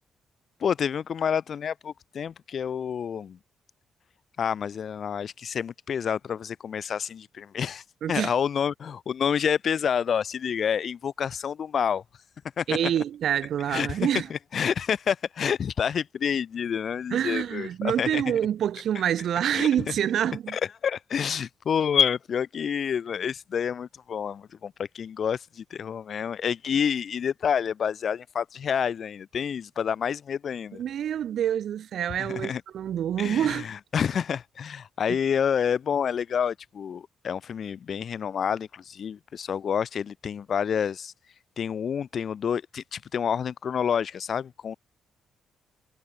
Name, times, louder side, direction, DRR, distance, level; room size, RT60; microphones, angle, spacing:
voice 1, 0.6-3.4 4.4-12.0 12.6-12.8 13.7-18.2 19.5-19.9 20.5-30.8 32.2-32.6 33.2-41.1 41.6-44.8, left 7 dB, 45° left, 1.0 m, -28 dB
voice 2, 8.0-8.3 12.7-14.3 17.1-20.6 30.8-33.7, right 10 dB, 60° right, 2.0 m, -27 dB
cardioid pair, 135°, 0 cm